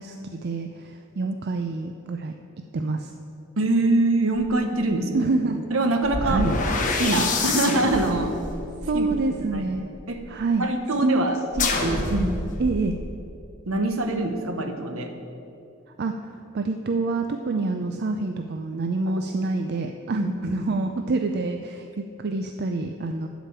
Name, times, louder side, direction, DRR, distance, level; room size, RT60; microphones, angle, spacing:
voice 1, 0.0-2.4 2.7-3.1 5.1-5.7 6.2-6.5 8.8-9.9 10.3-10.7 11.0-11.7 12.6-12.9 16.0-23.3, right 3 dB, 50° right, 6 dB, 0.4 m, -27 dB
voice 2, 3.6-5.3 5.7-6.4 7.0-8.3 8.9-9.1 9.5-9.7 10.1-10.2 10.6-11.4 11.7-12.3 13.7-15.1 20.2-20.5, right 2 dB, 65° right, 6 dB, 1.1 m, -24 dB
sound 1, 4.4-4.5 6.0-10.1 11.5-13.0, left 3 dB, 35° left, 1.2 m, -27 dB
12.0 x 5.2 x 8.7 m, 2.7 s
head